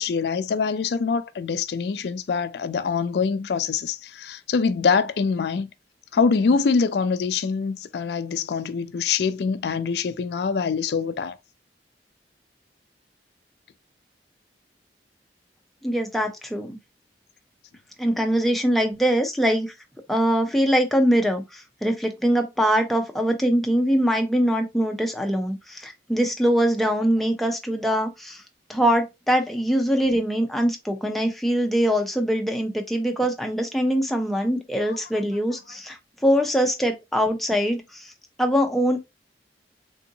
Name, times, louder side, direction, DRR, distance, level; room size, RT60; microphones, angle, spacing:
voice 1, 0.0-5.7 6.1-11.4 34.9-35.0, left 5 dB, 70° left, 0.4 m, -24 dB
voice 2, 15.8-16.8 18.0-19.7 20.1-28.4 28.7-36.0 36.2-38.1 38.4-39.0, equal, ahead, 0.6 m, -23 dB
3.6 x 2.6 x 2.7 m
head